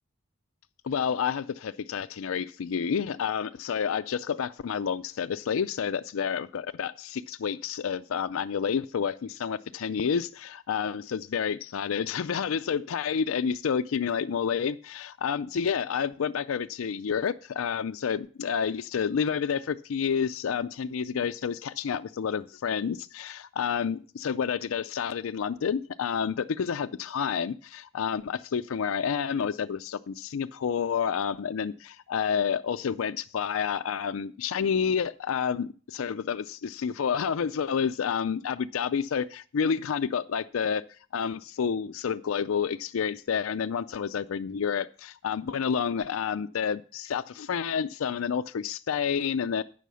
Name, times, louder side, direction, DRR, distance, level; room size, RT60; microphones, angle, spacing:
voice 1, 0.8-40.8 41.1-49.6, left 7 dB, 85° left, 10 dB, 0.4 m, -29 dB
9.2 x 6.3 x 6.8 m, 0.40 s
head